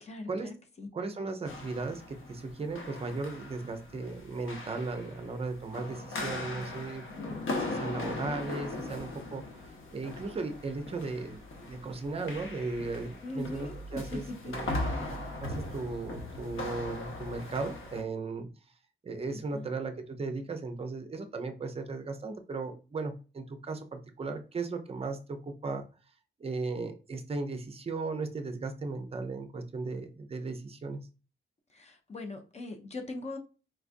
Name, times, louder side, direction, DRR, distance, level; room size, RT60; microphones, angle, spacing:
voice 1, 0.0-0.9 13.2-14.0 14.4-14.5 14.9-15.2 19.3-19.7 31.7-33.4, left 2 dB, 35° left, 0.5 m, -41 dB
voice 2, 0.9-11.4 11.7-14.7 15.4-18.5 19.0-25.8 26.4-31.0, right 3 dB, 30° right, 0.5 m, -36 dB
sound 1, 1.5-18.0, left 2 dB, 85° left, 0.8 m, -39 dB
4.4 x 2.3 x 2.5 m
wide cardioid pair, 150°, 20 cm